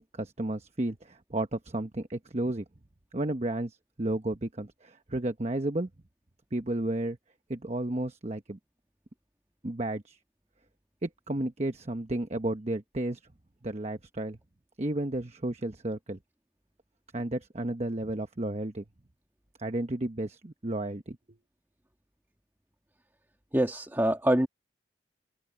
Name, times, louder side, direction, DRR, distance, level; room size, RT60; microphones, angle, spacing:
voice 1, 0.0-2.6 3.1-5.9 6.5-7.2 7.5-8.6 9.6-10.2 11.0-13.2 13.6-14.4 14.8-16.2 17.1-18.8 19.6-21.2, right 1 dB, 40° right, 1.0 m, -32 dB
voice 2, 23.5-24.5, right 1 dB, 15° right, 1.6 m, -25 dB
open air
head